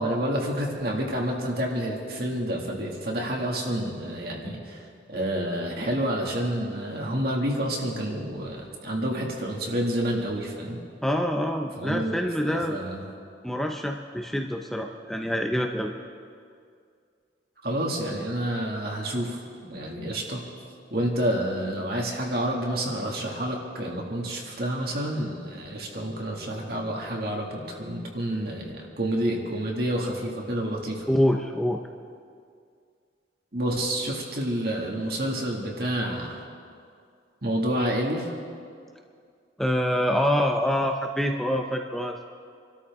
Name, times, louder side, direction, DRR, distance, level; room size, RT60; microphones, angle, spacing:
voice 1, 0.0-4.8 5.1-10.8 11.8-13.0 17.6-19.4 19.7-20.4 20.9-31.0 33.5-36.4 37.4-38.3, right 1 dB, 55° right, -1 dB, 2.3 m, -29 dB
voice 2, 11.0-12.8 13.4-15.9 31.1-31.8 39.6-42.2, equal, ahead, 2 dB, 0.6 m, -26 dB
27.0 x 13.0 x 3.7 m, 2.3 s
head